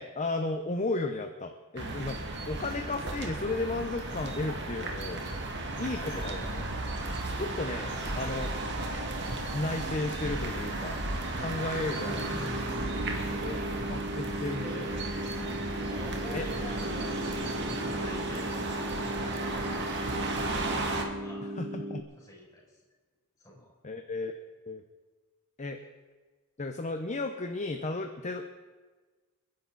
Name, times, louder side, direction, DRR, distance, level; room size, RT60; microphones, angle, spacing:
voice 1, 0.0-5.3 5.8-6.9 7.3-8.5 9.5-11.0 11.4-12.3 13.4-13.6 13.9-15.1 16.3-16.5 21.4-22.0 23.8-24.3 24.7-24.8 25.6-25.8 26.6-28.5, left 2 dB, 35° left, 5 dB, 0.8 m, -34 dB
sound 1, 1.8-21.0, right 2 dB, 55° right, 2.1 m, -34 dB
voice 2, 5.9-6.5 8.0-8.6 11.7-12.3 13.1-13.5 14.6-15.0 15.9-18.6 19.0-19.9 21.2-21.4 22.2-22.8 23.4-23.7, right 1 dB, 15° left, -5 dB, 6.9 m, -46 dB
sound 2, 12.0-22.0, right 1 dB, 30° right, 1.1 m, -38 dB
29.0 x 10.5 x 4.1 m, 1.3 s
head